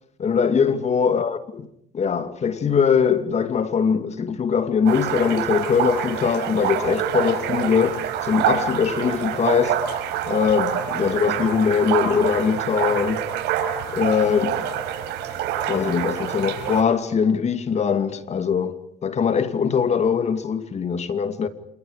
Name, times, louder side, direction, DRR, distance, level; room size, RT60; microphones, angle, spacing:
voice 1, 0.2-1.7 1.9-9.8 10.3-13.3 13.9-14.7 15.7-21.5, left 6 dB, 40° left, 2.5 m, -22 dB
sound 1, 4.8-16.8, right 9 dB, 85° right, 5.1 m, -26 dB
29.5 x 27.5 x 5.1 m
cardioid pair, 110°, 17 cm